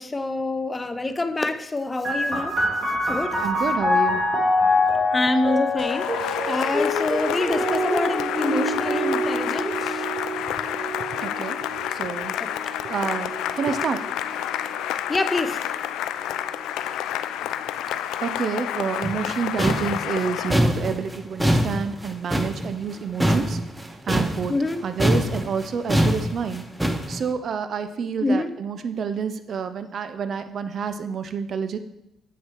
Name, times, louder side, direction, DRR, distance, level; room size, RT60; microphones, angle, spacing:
voice 1, 0.0-2.6 3.0-3.4 5.1-10.1 12.4-12.5 13.0-13.1 15.1-15.6 24.5-24.8 28.2-28.5, left 2 dB, 20° left, 11 dB, 0.6 m, -26 dB
sound 1, 2.0-15.3 16.1-16.9, left 1 dB, 30° right, 2.7 m, -26 dB
voice 2, 3.4-4.4 10.4-10.5 11.2-12.3 12.8-14.0 18.2-23.6 24.1-24.5 24.8-26.6 27.1-31.8, right 6 dB, 55° right, 10 dB, 0.6 m, -29 dB
Cheering / Applause, 5.8-20.6, left 11 dB, 90° left, 0.4 m, -29 dB
sound 2, 19.0-24.7 25.0-27.2, equal, 10° right, 0.9 m, -23 dB
7.6 x 6.5 x 4.5 m, 0.85 s
cardioid pair, 90°, 0 cm